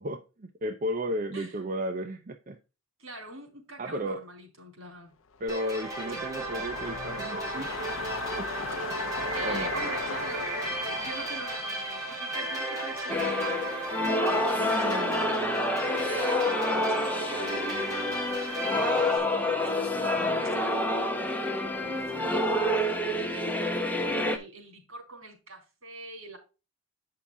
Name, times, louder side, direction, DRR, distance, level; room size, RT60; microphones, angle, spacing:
voice 1, 0.0-2.6 3.8-4.2 5.4-7.8 8.4-8.5 9.4-9.7 14.6-15.3 20.1-20.6, equal, 40° right, 0.6 m, -34 dB
voice 2, 3.0-5.1 6.1-6.2 8.8-15.6 16.1-16.5 16.9-19.4 19.7-21.3 21.8-26.4, right 2 dB, 75° right, 3.4 m, -44 dB
sound 1, 5.4-13.8 14.2-14.3, left 5 dB, 75° left, 0.6 m, -39 dB
sound 2, 5.5-19.2, right 2 dB, 15° right, 3.4 m, -34 dB
sound 3, 13.1-24.4, left 1 dB, 10° left, 0.9 m, -28 dB
8.4 x 5.7 x 3.6 m
head